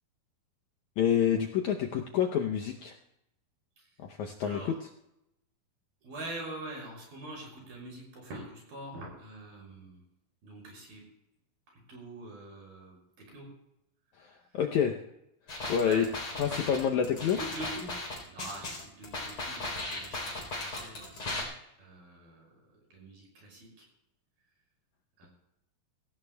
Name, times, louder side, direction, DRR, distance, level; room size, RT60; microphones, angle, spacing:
voice 1, 1.0-3.0 4.0-4.9 14.2-14.3 14.5-15.0 15.7-16.1 16.4-17.4, left 8 dB, 75° left, 2 dB, 1.8 m, -28 dB
voice 2, 6.0-10.0 10.4-11.0 11.9-13.0 13.3-13.5 15.7-16.5 17.2-17.9 18.3-21.5 21.8-22.5 22.9-23.9 25.2-25.3, right 2 dB, 75° right, -1 dB, 8.2 m, -44 dB
sound 1, 15.5-21.4, left 2 dB, 35° left, 4.4 m, -37 dB
24.5 x 16.5 x 2.3 m, 0.83 s
omnidirectional pair, 4.3 m